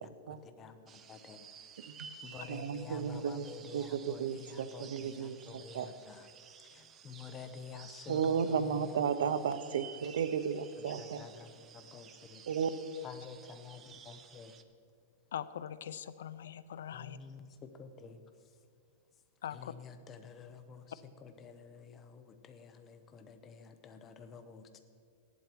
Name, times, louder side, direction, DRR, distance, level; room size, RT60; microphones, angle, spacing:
voice 1, 0.0-1.4 1.8-1.9 2.2-6.3 6.6-9.0 10.8-12.4 13.0-14.6 16.9-18.6 19.5-24.8, left 6 dB, 20° left, 8 dB, 0.8 m, -50 dB
sound 1, 0.9-14.6, right 7 dB, 20° right, 0.6 m, -54 dB
voice 2, 2.5-3.5 3.7-5.9 8.1-11.2 12.5-12.7, right 7 dB, 85° right, 13 dB, 0.7 m, -34 dB
voice 3, 15.3-17.2 19.4-19.7, left 9 dB, 85° left, 15 dB, 0.6 m, -42 dB
14.5 x 11.0 x 4.5 m, 2.3 s
supercardioid pair, 165°, 0 cm